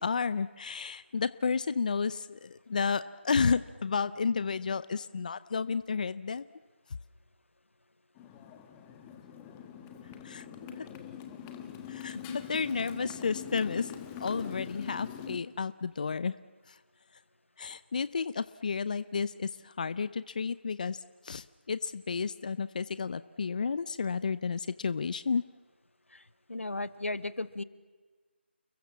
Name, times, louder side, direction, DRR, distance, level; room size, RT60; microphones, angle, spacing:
voice 1, 0.0-6.4 10.2-10.9 11.9-13.9 14.2-16.3 16.7-16.8 17.6-25.4, left 5 dB, 40° left, 15 dB, 0.7 m, -32 dB
Motorcycle, 8.2-15.4, left 9 dB, 10° left, 1.4 m, -44 dB
voice 2, 26.5-27.6, left 2 dB, 90° left, 14 dB, 1.5 m, -35 dB
30.0 x 21.5 x 7.4 m, 1.4 s
figure-of-eight pair, 165°, 7 cm